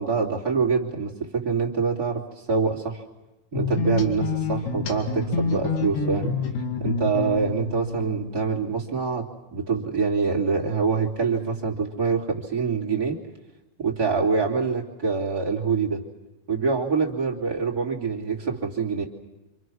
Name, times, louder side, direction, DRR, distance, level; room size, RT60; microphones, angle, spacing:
voice 1, 0.0-3.0 3.5-6.3 6.8-13.2 13.8-16.0 16.5-19.0, right 5 dB, 25° right, -2 dB, 3.0 m, -25 dB
sound 1, 3.5-8.7, left 4 dB, 80° left, 4.7 m, -28 dB
28.0 x 27.0 x 6.4 m, 1.0 s
omnidirectional pair, 5.0 m